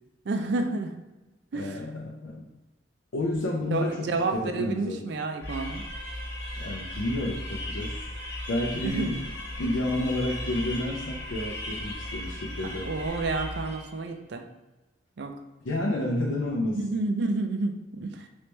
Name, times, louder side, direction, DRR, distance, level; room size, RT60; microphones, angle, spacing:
voice 1, 0.2-1.0 1.5-1.9 3.7-5.8 8.7-9.1 12.8-14.4 15.2-15.3 16.6-18.3, right 3 dB, 60° right, 6 dB, 0.4 m, -30 dB
voice 2, 1.5-2.5 3.1-5.0 6.6-8.0 8.5-9.1 9.6-12.9 15.6-16.8, left 1 dB, 85° left, -1 dB, 0.5 m, -30 dB
sound 1, 5.4-14.0, left 1 dB, 55° left, 0.9 m, -36 dB
3.2 x 3.0 x 3.2 m, 1.1 s
head